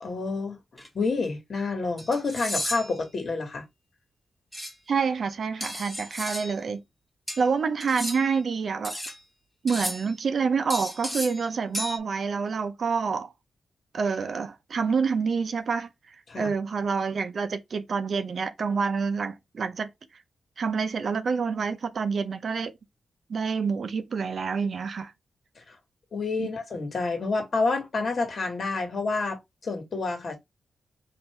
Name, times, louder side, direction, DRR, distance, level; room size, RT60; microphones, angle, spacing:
voice 1, 0.0-0.6 0.9-3.6 16.3-16.5 25.7-25.8 26.1-30.4, left 3 dB, 55° left, 1.7 m, -28 dB
sound 1, 0.8-0.9 2.0-3.0 4.5-4.7 5.6-6.6 7.3-8.4 8.8-9.2 9.7-10.1 10.7-11.5 11.7-12.0, equal, 5° left, 1.2 m, -34 dB
voice 2, 4.9-6.8 7.4-9.0 9.6-13.3 13.9-15.9 16.4-19.9 20.6-22.7 23.3-25.1 26.4-26.5, right 5 dB, 60° right, 0.6 m, -27 dB
4.3 x 2.7 x 3.3 m
wide cardioid pair, 105°, 0 cm